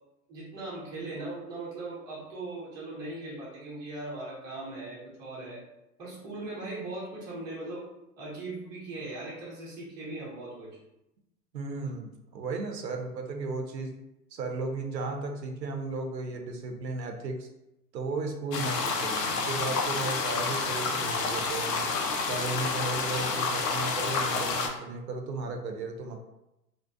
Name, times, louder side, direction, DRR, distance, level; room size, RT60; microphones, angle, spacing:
voice 1, 0.3-5.6 6.0-7.8 8.2-10.8, right 2 dB, 10° right, -8 dB, 0.4 m, -39 dB
voice 2, 11.5-14.0 14.3-17.5 17.9-21.9 22.3-26.3, right 3 dB, 85° right, 4 dB, 0.6 m, -35 dB
sound 1, 18.5-24.7, left 4 dB, 75° left, 0.6 m, -29 dB
2.6 x 2.1 x 2.2 m, 0.89 s
figure-of-eight pair, 100°, 49 cm